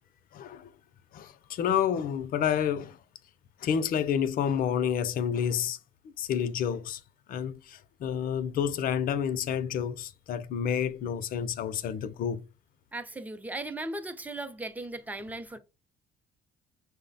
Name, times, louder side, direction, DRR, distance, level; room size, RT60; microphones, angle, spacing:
voice 1, 0.3-0.7 1.1-3.0 3.6-5.8 6.2-7.0 7.3-12.4, left 8 dB, 60° left, 0.6 m, -29 dB
voice 2, 12.9-15.6, right 2 dB, 10° right, 0.6 m, -37 dB
6.3 x 2.1 x 4.0 m
cardioid pair, 110°, 17 cm